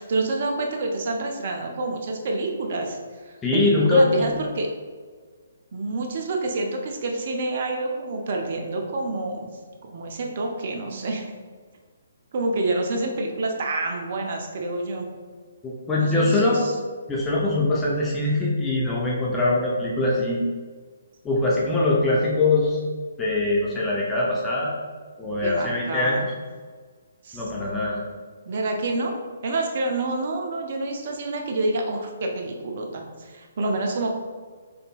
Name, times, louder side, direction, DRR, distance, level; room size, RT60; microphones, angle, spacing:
voice 1, 0.0-3.0 3.2-4.7 5.7-9.5 9.8-11.3 12.3-15.1 16.0-16.7 25.4-26.3 27.2-27.9 28.5-34.1, right 2 dB, 50° right, 2 dB, 0.5 m, -28 dB
voice 2, 3.4-4.3 15.6-16.6 17.1-20.4 21.2-22.8 23.2-24.7 25.2-26.2 27.3-28.0, left 2 dB, 15° left, -5 dB, 0.6 m, -22 dB
3.7 x 3.4 x 2.3 m, 1.5 s
figure-of-eight pair, 135°, 0 cm